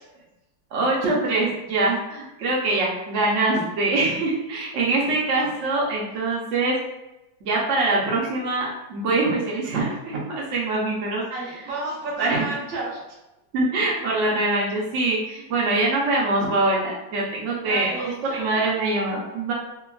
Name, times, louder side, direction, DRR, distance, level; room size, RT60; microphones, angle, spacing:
voice 1, 0.7-6.8 7.4-11.2 12.2-12.5 13.5-19.5, right 2 dB, 85° right, -4 dB, 0.6 m, -24 dB
voice 2, 11.3-13.0 17.6-18.8, right 2 dB, 55° right, -5 dB, 1.1 m, -32 dB
3.3 x 2.2 x 2.2 m, 0.97 s
omnidirectional pair, 2.1 m